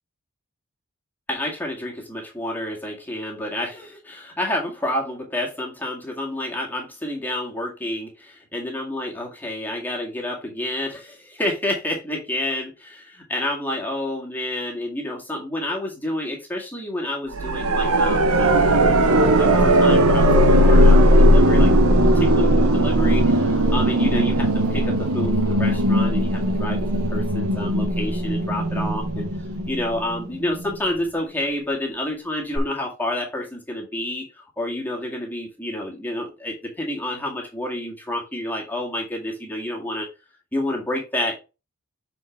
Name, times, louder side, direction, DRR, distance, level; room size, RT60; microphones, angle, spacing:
voice 1, 1.3-18.6 18.8-21.7 22.2-26.8 27.1-29.3 29.7-40.1 40.5-41.3, left 1 dB, 10° left, -2 dB, 2.0 m, -29 dB
sound 1, 17.3-30.2 32.6-32.7, right 1 dB, 80° right, 1.0 m, -17 dB
7.8 x 4.7 x 3.4 m, 0.28 s
head